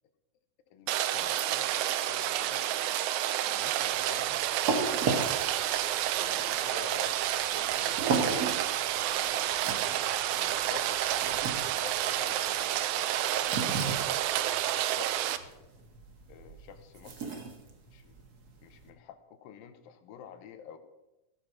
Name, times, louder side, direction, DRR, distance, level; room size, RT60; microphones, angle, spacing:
voice 1, 0.7-3.1 3.4-4.4 5.0-5.7 6.1-8.4 9.0-10.0 10.3-14.5 14.9-15.7 16.3-17.4 17.9-18.1 18.6-20.8, left 8 dB, 80° left, 9 dB, 2.6 m, -49 dB
Rain, 0.9-15.4, right 12 dB, 90° right, 1.7 m, -30 dB
sound 1, 3.9-18.9, right 4 dB, 70° right, 0.9 m, -36 dB
17.0 x 6.3 x 5.9 m, 1.0 s
omnidirectional pair, 4.2 m